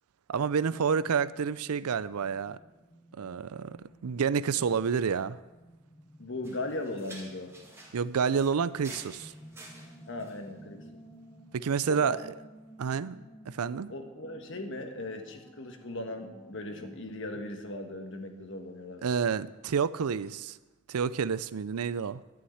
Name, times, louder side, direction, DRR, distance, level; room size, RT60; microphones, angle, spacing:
voice 1, 0.3-2.6 3.2-3.8 4.0-5.4 7.9-9.3 11.5-12.3 12.8-13.2 13.5-13.9 19.0-20.6 20.9-22.2, right 6 dB, 85° right, 17 dB, 0.5 m, -29 dB
sound 1, 1.3-17.0, right 1 dB, 15° left, 0.9 m, -54 dB
voice 2, 6.2-7.5 10.1-10.8 11.9-12.2 13.9-19.1, left 2 dB, 55° left, 5 dB, 1.5 m, -38 dB
sound 2, 6.4-10.4, right 2 dB, 10° right, 2.0 m, -50 dB
11.5 x 6.4 x 9.3 m, 1.1 s
head